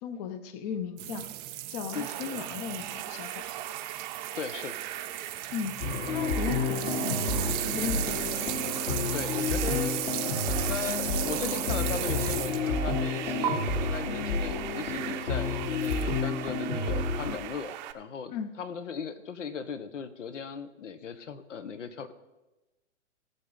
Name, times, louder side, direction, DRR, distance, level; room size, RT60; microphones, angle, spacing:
voice 1, 0.0-1.3 1.7-3.5 5.5-5.8 6.1-7.4 7.7-8.4 18.3-18.5, left 7 dB, 35° left, 12 dB, 0.7 m, -36 dB
sound 1, 1.0-12.8 13.4-13.5 15.8-16.0, right 13 dB, 15° right, 0.4 m, -35 dB
sound 2, 1.9-17.9, right 13 dB, 40° right, 0.7 m, -39 dB
voice 2, 4.3-4.8 9.1-18.3 18.6-22.1, left 6 dB, 80° left, 12 dB, 1.1 m, -38 dB
sound 3, 5.8-17.4, left 4 dB, 65° left, 2.8 m, -30 dB
18.0 x 6.7 x 3.9 m, 1.0 s
hypercardioid pair, 135°, 36 cm